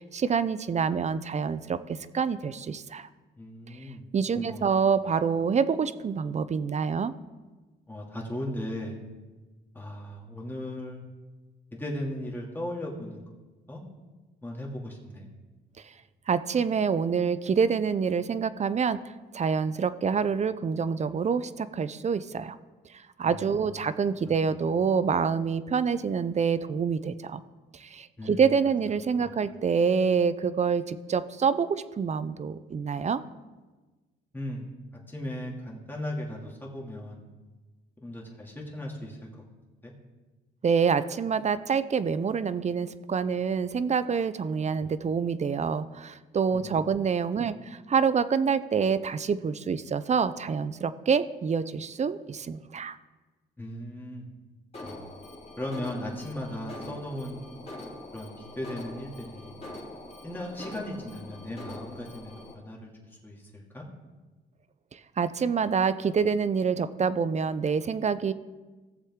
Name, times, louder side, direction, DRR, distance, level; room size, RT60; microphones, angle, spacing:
voice 1, 0.0-3.1 3.7-3.8 4.1-7.1 15.8-15.9 16.3-19.0 19.3-22.6 22.9-27.4 27.7-33.2 40.6-53.0 64.9-68.3, right 6 dB, 35° right, 14 dB, 0.6 m, -27 dB
voice 2, 3.4-4.1 4.4-4.7 7.9-8.9 9.7-11.0 11.7-13.2 13.7-13.8 14.4-15.3 23.2-23.7 24.3-24.4 28.2-28.5 29.2-29.3 34.3-34.7 35.1-37.2 38.0-39.3 39.8-39.9 44.8-44.9 46.5-46.9 47.4-47.5 53.6-54.3 54.8-55.0 55.6-57.4 58.1-59.5 60.2-63.9, left 1 dB, 10° left, -3 dB, 2.6 m, -37 dB
Alarm, 54.7-62.5, left 1 dB, 30° left, 3.1 m, -43 dB
17.0 x 7.3 x 3.7 m, 1.3 s
cardioid pair, 90°, 20 cm